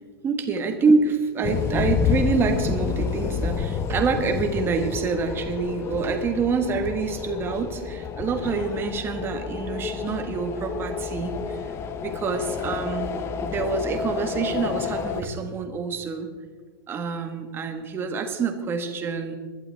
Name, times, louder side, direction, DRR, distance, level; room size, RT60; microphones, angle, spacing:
voice 1, 0.2-11.6 12.0-13.1 13.4-16.3 16.9-19.4, right 4 dB, 20° right, 6 dB, 1.4 m, -26 dB
sound 1, 1.4-15.2, left 6 dB, 20° left, 0.7 m, -29 dB
21.0 x 12.0 x 3.4 m, 1.5 s
supercardioid pair, 155°, 12 cm